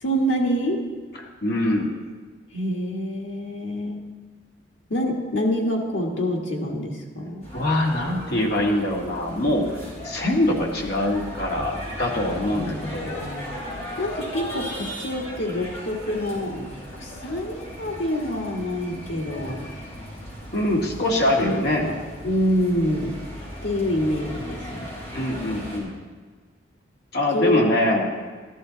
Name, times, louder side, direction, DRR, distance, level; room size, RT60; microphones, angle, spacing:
voice 1, 0.0-1.0 2.5-4.2 4.9-7.5 12.5-13.5 14.0-19.7 21.4-22.0 22.2-23.3 23.6-24.9 27.3-27.7, equal, 90° left, 0 dB, 1.9 m, -26 dB
voice 2, 1.4-1.9 7.5-9.8 10.0-13.2 20.5-21.9 25.1-25.9 27.1-28.1, left 1 dB, 55° left, -1 dB, 1.9 m, -23 dB
sound 1, 7.4-25.8, equal, 35° left, 4.0 m, -37 dB
14.0 x 11.5 x 4.0 m, 1.4 s
head